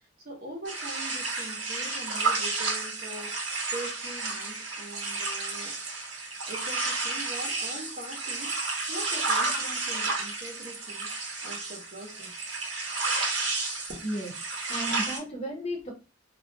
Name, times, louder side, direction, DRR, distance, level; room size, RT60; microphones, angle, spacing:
voice 1, 0.2-3.3 3.7-5.7 6.5-11.1 11.4-12.3 13.9-14.0, right 1 dB, 50° right, 0 dB, 0.9 m, -42 dB
sound 1, 0.6-15.2, right 3 dB, 75° right, 1.0 m, -31 dB
voice 2, 14.0-14.3 14.7-15.9, equal, 30° left, 0 dB, 0.6 m, -33 dB
2.4 x 2.1 x 2.6 m, 0.31 s
head